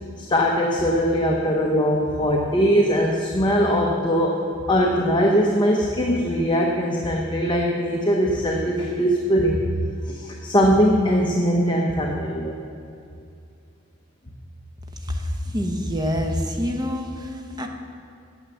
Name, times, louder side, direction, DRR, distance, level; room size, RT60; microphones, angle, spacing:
voice 1, 0.2-4.4 4.7-9.6 10.1-12.6, equal, 25° left, 0 dB, 0.8 m, -21 dB
voice 2, 15.0-17.7, equal, 20° right, 3 dB, 1.0 m, -26 dB
9.5 x 7.8 x 7.0 m, 2.5 s
head